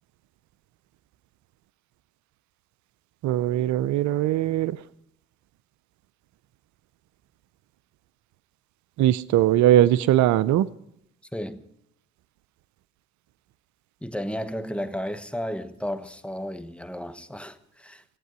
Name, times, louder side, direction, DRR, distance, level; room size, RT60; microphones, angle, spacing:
voice 1, 3.2-4.8 9.0-10.7, right 13 dB, 80° right, 0.5 m, -20 dB
voice 2, 11.3-11.6 14.0-18.0, equal, 5° left, 1.2 m, -33 dB
15.5 x 8.9 x 9.5 m
supercardioid pair, 50°, 29 cm